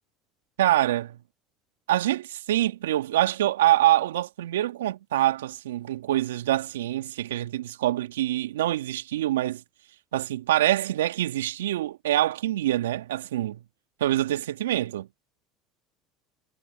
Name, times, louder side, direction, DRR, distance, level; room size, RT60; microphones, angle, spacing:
voice 1, 0.6-1.2 1.9-9.6 10.1-13.6 14.0-15.1, right 14 dB, 80° right, 2.1 m, -25 dB
hypercardioid pair, 75°, 0 cm